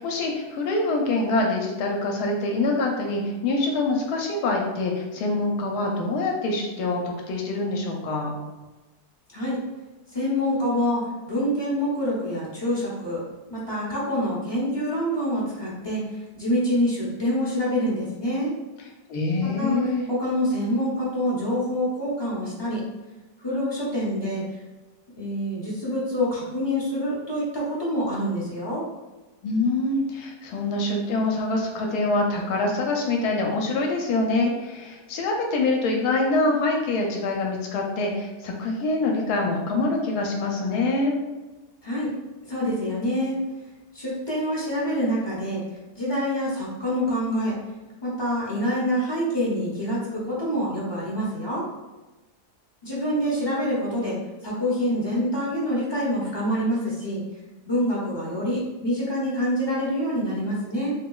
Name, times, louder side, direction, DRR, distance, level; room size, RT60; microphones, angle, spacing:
voice 1, 0.0-8.3 19.1-20.0 29.4-41.1, left 2 dB, 75° left, 1 dB, 1.1 m, -25 dB
voice 2, 10.1-13.2 13.5-18.5 19.4-22.8 23.4-24.4 25.1-28.8 41.8-42.1 42.5-43.4 43.9-45.6 45.9-47.6 48.0-51.7 52.8-57.2 57.6-60.9, equal, 35° left, -7 dB, 0.4 m, -26 dB
3.2 x 2.9 x 2.3 m, 1.1 s
omnidirectional pair, 1.7 m